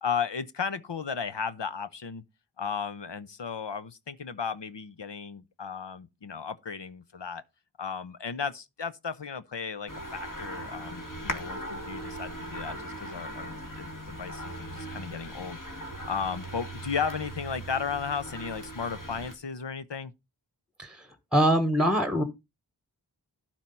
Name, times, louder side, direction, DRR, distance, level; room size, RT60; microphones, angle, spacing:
voice 1, 0.0-2.2 2.6-7.4 7.8-15.6 16.1-20.1, left 6 dB, 70° left, 0.9 m, -35 dB
sound 1, 9.9-19.3, right 1 dB, 45° left, 2.6 m, -39 dB
voice 2, 21.3-22.2, equal, ahead, 1.3 m, -23 dB
12.0 x 4.5 x 5.5 m
wide cardioid pair, 40°, 44 cm